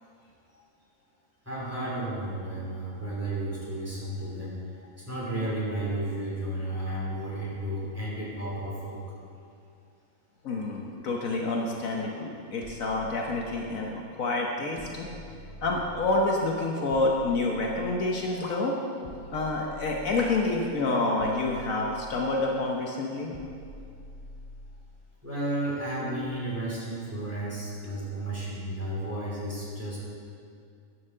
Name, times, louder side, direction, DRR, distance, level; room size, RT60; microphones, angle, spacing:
voice 1, 1.4-9.0 25.2-30.0, right 1 dB, 10° right, -7 dB, 3.0 m, -33 dB
voice 2, 10.4-15.1 15.6-18.7 19.3-23.3, left 2 dB, 65° left, -1 dB, 1.3 m, -28 dB
sound 1, 12.6-13.9 14.8-16.4 16.9-18.3 19.0-20.6 21.2-22.6 23.3-24.9, left 1 dB, 35° left, 0.7 m, -46 dB
11.0 x 6.4 x 6.7 m, 2.4 s
omnidirectional pair, 1.6 m